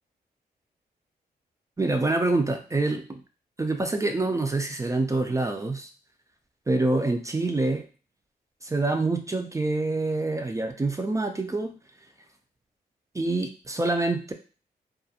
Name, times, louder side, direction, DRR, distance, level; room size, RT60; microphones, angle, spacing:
voice 1, 1.8-3.2 3.6-5.9 6.7-7.9 8.6-11.7 13.1-14.3, right 2 dB, 20° right, 5 dB, 0.4 m, -26 dB
2.4 x 2.0 x 2.7 m, 0.36 s
cardioid pair, 65°, 17 cm